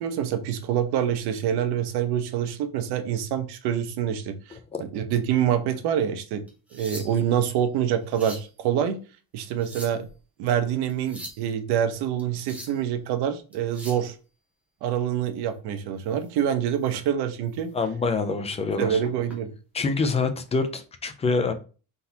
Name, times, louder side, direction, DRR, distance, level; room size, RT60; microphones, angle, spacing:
voice 1, 0.0-4.6 4.9-6.5 6.7-9.0 9.3-10.1 10.4-14.1 14.8-17.7 18.8-19.5, right 9 dB, 75° right, 0.9 m, -26 dB
sound 1, 6.5-7.4 7.9-8.5 9.4-10.1 10.9-11.4 12.2-12.8 13.5-14.1 16.1-16.3 16.8-17.0 17.5-17.6 18.8-19.4 20.5-20.7, right 1 dB, 5° right, 1.1 m, -43 dB
voice 2, 17.7-19.0 19.7-21.5, left 4 dB, 15° left, 0.3 m, -26 dB
4.1 x 3.9 x 2.7 m
cardioid pair, 165°, 40 cm